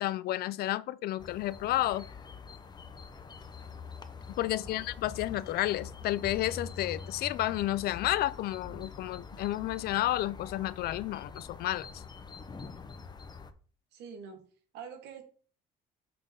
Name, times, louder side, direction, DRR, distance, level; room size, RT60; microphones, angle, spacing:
voice 1, 0.0-2.1 4.4-12.0, left 15 dB, 65° left, 0.4 m, -31 dB
sound 1, 1.2-13.5, left 5 dB, 25° left, 0.7 m, -45 dB
voice 2, 4.4-4.8 13.9-14.4 14.7-15.2, right 6 dB, 80° right, 1.7 m, -46 dB
5.9 x 3.7 x 5.2 m
cardioid pair, 110°, 17 cm